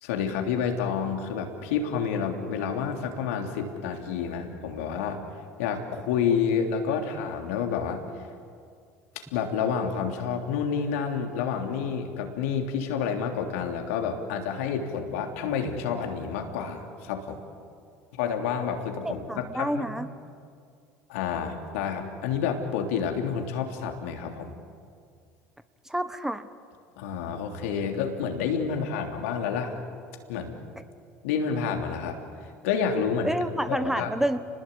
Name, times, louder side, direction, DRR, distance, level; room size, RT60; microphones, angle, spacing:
voice 1, 0.0-5.2 5.6-8.0 9.1-17.4 18.2-19.9 21.1-24.5 27.0-29.8 30.3-30.5 31.2-32.2 32.6-33.3 33.7-34.1, left 6 dB, 70° left, 3 dB, 3.3 m, -29 dB
voice 2, 19.0-20.1 25.8-26.5 33.2-34.4, right 1 dB, 5° right, 11 dB, 1.3 m, -28 dB
30.0 x 20.5 x 8.5 m, 2.2 s
hypercardioid pair, 70°, 8 cm